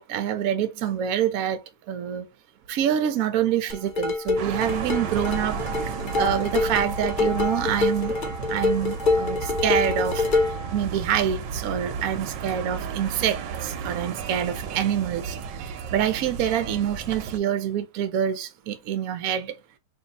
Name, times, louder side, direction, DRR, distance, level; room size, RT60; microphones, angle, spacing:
voice 1, 0.0-2.2 2.7-8.1 8.5-10.3 10.7-19.5, right 9 dB, 70° right, 0.9 m, -26 dB
sound 1, 3.7-10.7, left 3 dB, 55° left, 0.5 m, -26 dB
sound 2, 4.4-17.4, right 6 dB, 90° right, 1.3 m, -33 dB
3.2 x 2.7 x 3.9 m
omnidirectional pair, 1.9 m